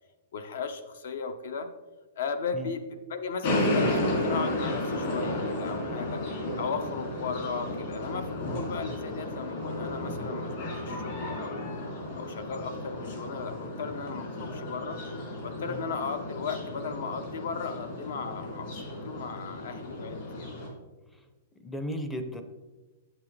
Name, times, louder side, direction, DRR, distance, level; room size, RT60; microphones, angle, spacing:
voice 1, 0.3-1.7 2.2-6.3 6.6-11.7 12.2-15.0 15.4-20.5, left 5 dB, 70° left, 10 dB, 0.8 m, -36 dB
sound 1, 3.4-20.7, left 1 dB, 45° left, 2.6 m, -33 dB
voice 2, 21.6-22.4, equal, 5° left, 7 dB, 0.5 m, -35 dB
8.6 x 7.3 x 3.2 m, 1.2 s
supercardioid pair, 170°, 0 cm